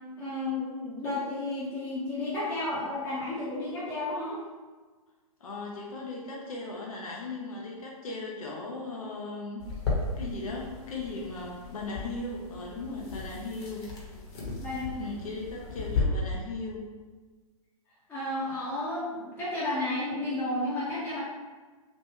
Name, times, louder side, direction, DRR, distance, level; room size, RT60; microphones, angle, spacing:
voice 1, 0.2-4.4 14.6-15.0 18.1-21.2, left 2 dB, 10° left, -10 dB, 0.9 m, -32 dB
voice 2, 5.4-9.6 10.2-13.8 15.0-16.8, left 3 dB, 65° left, -2 dB, 0.8 m, -37 dB
sound 1, 9.6-16.0, left 4 dB, 50° left, 1.1 m, -36 dB
3.0 x 2.5 x 3.5 m, 1.4 s
figure-of-eight pair, 120°, 19 cm